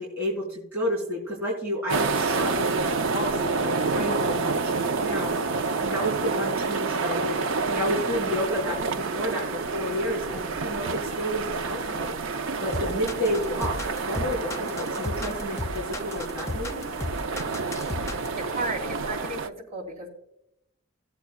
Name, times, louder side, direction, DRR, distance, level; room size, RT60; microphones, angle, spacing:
voice 1, 0.0-13.7 14.1-14.4 14.8-16.8, equal, 10° right, -8 dB, 3.7 m, -31 dB
sound 1, 1.9-19.5, right 4 dB, 70° right, 0.6 m, -28 dB
sound 2, 12.7-18.4, left 2 dB, 15° left, 0.4 m, -33 dB
voice 2, 18.3-20.1, right 2 dB, 35° right, -3 dB, 3.6 m, -34 dB
18.0 x 8.3 x 2.3 m, 0.81 s
head